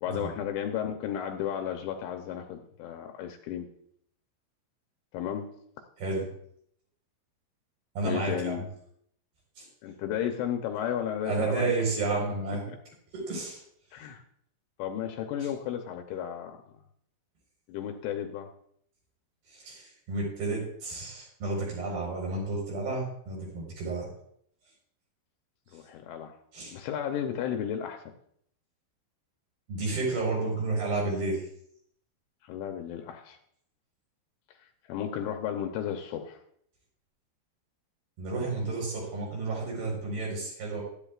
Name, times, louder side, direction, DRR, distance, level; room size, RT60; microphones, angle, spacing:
voice 1, 0.0-3.7 5.1-5.5 8.0-8.6 9.8-11.7 12.7-12.8 13.9-14.2 14.8-16.6 17.7-18.5 25.7-26.4 26.7-28.1 32.4-33.4 34.6-36.4, left 9 dB, 80° left, 5 dB, 3.0 m, -33 dB
voice 2, 8.0-8.6 9.6-9.7 11.2-12.6 13.1-13.6 19.5-24.1 26.5-26.8 29.7-31.4 38.2-40.8, right 3 dB, 50° right, -2 dB, 6.1 m, -31 dB
15.5 x 12.5 x 2.4 m, 0.67 s
omnidirectional pair, 5.8 m